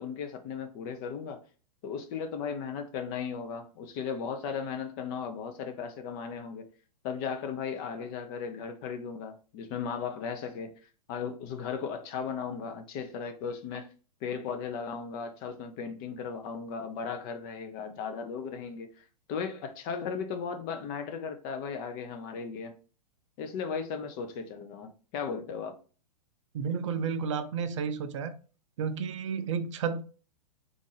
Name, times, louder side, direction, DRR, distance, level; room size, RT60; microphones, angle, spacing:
voice 1, 0.0-1.4 1.8-6.7 7.0-10.7 11.1-13.9 14.2-22.7 23.4-25.8, left 6 dB, 35° left, 0.6 m, -36 dB
voice 2, 26.5-28.3 28.8-30.0, right 6 dB, 50° right, 0.4 m, -31 dB
3.6 x 2.5 x 3.2 m
figure-of-eight pair, 105°, 21 cm